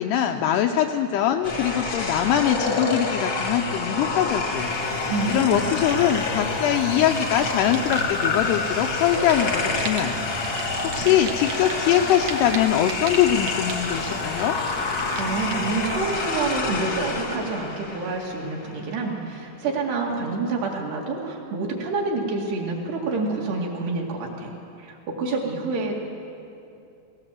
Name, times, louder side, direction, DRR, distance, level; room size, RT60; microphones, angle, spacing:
voice 1, 0.0-14.6, left 10 dB, 80° left, 5 dB, 2.4 m, -23 dB
sound 1, 1.4-18.8, left 3 dB, 55° left, 1.3 m, -28 dB
Fire, 4.2-17.5, right 4 dB, 85° right, 1.5 m, -38 dB
voice 2, 5.1-5.6 15.2-24.5 24.8-25.9, right 3 dB, 65° right, -1 dB, 3.9 m, -28 dB
19.0 x 18.5 x 7.6 m, 2.7 s
omnidirectional pair, 5.3 m